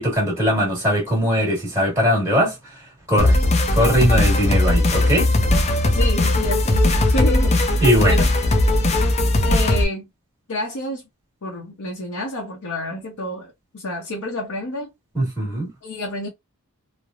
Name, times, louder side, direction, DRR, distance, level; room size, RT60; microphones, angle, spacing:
voice 1, 0.0-2.5 3.1-3.4 3.7-5.3 7.8-8.2 15.1-15.7, equal, 10° right, 1.4 m, -20 dB
sound 1, 3.2-9.8, left 1 dB, 30° left, 0.5 m, -18 dB
voice 2, 5.9-7.7 8.0-8.3 9.4-10.0 10.5-11.0 11.4-14.9 15.8-16.3, left 1 dB, 70° left, 0.8 m, -28 dB
3.2 x 2.0 x 2.4 m
head